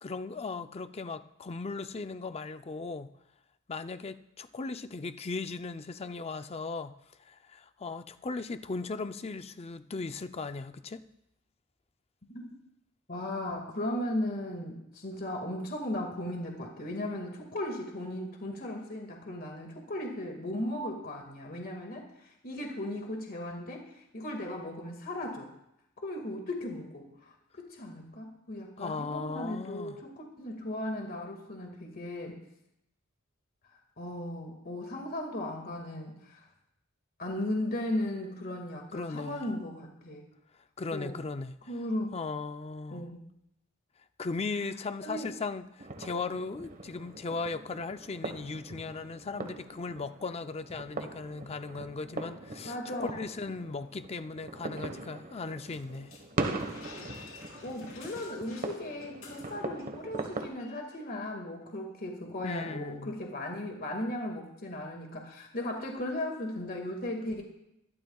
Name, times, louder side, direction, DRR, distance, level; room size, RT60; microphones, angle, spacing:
voice 1, 0.0-3.1 3.7-6.9 7.2-11.0 28.8-30.0 38.9-39.5 40.8-41.6 42.1-43.1 44.2-56.1 62.4-63.1, left 4 dB, 30° left, 10 dB, 0.5 m, -37 dB
voice 2, 13.1-23.8 24.1-25.5 26.0-27.1 27.6-32.4 34.0-36.5 37.2-40.2 40.9-41.2 41.7-42.1 42.9-43.2 45.0-45.3 52.6-53.2 57.6-67.4, left 1 dB, 45° left, 2 dB, 2.0 m, -36 dB
sound 1, 45.8-60.5, right 2 dB, 40° right, 1.3 m, -40 dB
sound 2, 55.6-59.9 60.1-60.3 60.6-61.0, left 4 dB, 80° left, 4.1 m, -51 dB
23.5 x 12.5 x 2.4 m, 0.82 s
head